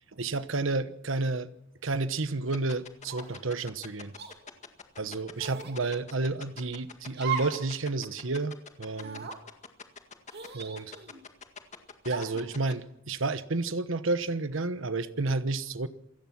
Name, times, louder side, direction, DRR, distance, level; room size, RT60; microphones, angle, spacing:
voice 1, 0.1-1.5 1.8-4.1 5.0-9.3 10.5-10.9 12.0-15.9, right 3 dB, 75° right, 1.1 m, -31 dB
sound 1, 2.5-12.7, left 5 dB, 35° left, 1.9 m, -43 dB
sound 2, 3.1-3.5 4.2-4.3 5.4-5.8 7.1-7.6 8.0-8.1 8.9-9.4 10.3-11.2 12.1-12.5, right 6 dB, 55° right, 2.9 m, -37 dB
27.5 x 17.0 x 6.1 m
head